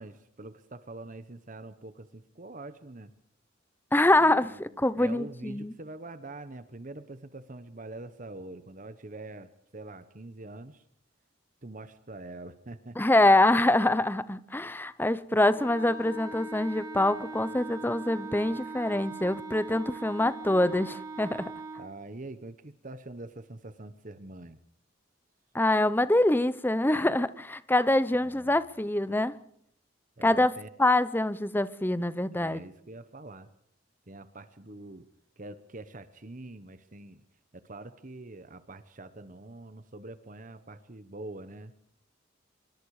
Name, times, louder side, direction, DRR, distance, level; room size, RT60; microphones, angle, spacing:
voice 1, 0.0-3.1 4.2-10.8 11.6-13.0 21.8-24.6 28.2-28.6 30.2-30.7 32.3-33.5 34.1-35.1 35.4-37.2 37.5-41.7, right 2 dB, 40° right, 1.2 m, -44 dB
voice 2, 3.9-5.7 13.0-21.5 25.5-29.3 30.2-32.6, left 1 dB, 10° left, 0.8 m, -25 dB
Wind instrument woodwind instrument, 15.5-21.9, right 3 dB, 20° right, 2.2 m, -41 dB
25.5 x 23.0 x 5.0 m
head